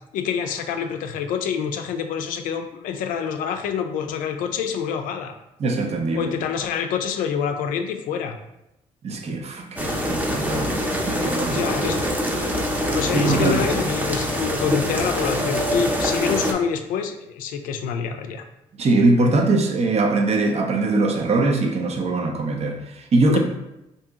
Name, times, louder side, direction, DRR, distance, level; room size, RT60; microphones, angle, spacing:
voice 1, 0.1-5.4 6.1-8.4 11.5-12.0 12.9-18.5 23.3-23.4, left 7 dB, 80° left, 6 dB, 0.4 m, -26 dB
voice 2, 5.6-6.3 9.0-10.7 11.2-11.6 13.1-13.6 18.8-23.4, right 2 dB, 50° right, 3 dB, 0.6 m, -21 dB
sound 1, 9.8-16.5, equal, 10° right, 0.7 m, -24 dB
2.8 x 2.7 x 3.5 m, 0.88 s
supercardioid pair, 65°, 14 cm